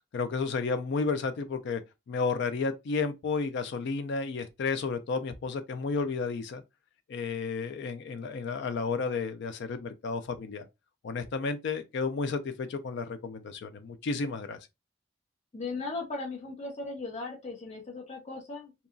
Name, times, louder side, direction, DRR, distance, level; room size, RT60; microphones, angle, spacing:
voice 1, 0.1-1.8 2.1-6.6 7.1-10.7 11.0-14.6, left 4 dB, 60° left, 0.3 m, -32 dB
voice 2, 15.5-18.9, left 3 dB, 35° left, 0.8 m, -37 dB
2.8 x 2.3 x 2.5 m
head